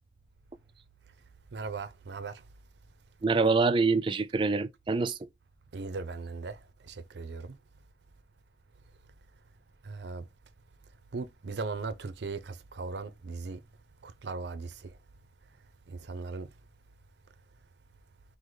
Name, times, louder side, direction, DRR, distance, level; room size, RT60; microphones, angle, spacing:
voice 1, 1.5-2.4 5.7-7.5 9.8-10.3 11.1-13.6 14.0-14.9 15.9-16.5, right 4 dB, 80° right, 0.5 m, -38 dB
voice 2, 3.2-5.3, right 4 dB, 30° right, 0.3 m, -26 dB
4.8 x 2.1 x 3.8 m
head